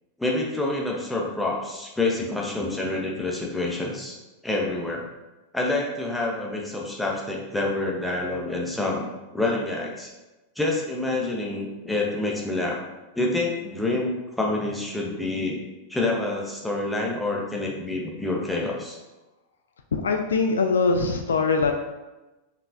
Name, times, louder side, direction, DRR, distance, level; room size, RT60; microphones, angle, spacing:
voice 1, 0.2-4.2 4.4-5.0 5.5-9.1 9.3-10.1 10.6-12.8 13.2-15.6 15.9-19.0, left 2 dB, 5° left, -2 dB, 0.7 m, -27 dB
voice 2, 19.9-21.7, left 4 dB, 70° left, 5 dB, 0.3 m, -22 dB
4.2 x 3.2 x 2.5 m, 1.1 s
figure-of-eight pair, 90°, 0 cm